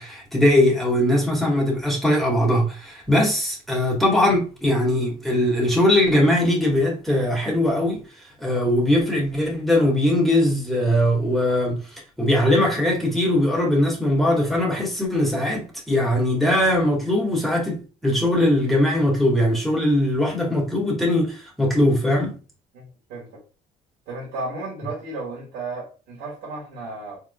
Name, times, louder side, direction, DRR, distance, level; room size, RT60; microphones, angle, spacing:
voice 1, 0.0-8.0 8.4-11.8 12.2-22.4, left 1 dB, ahead, 1.8 m, -20 dB
voice 2, 22.7-23.4 24.1-27.2, right 2 dB, 90° right, 2.1 m, -34 dB
4.4 x 3.7 x 2.3 m
cardioid pair, 110°, 17 cm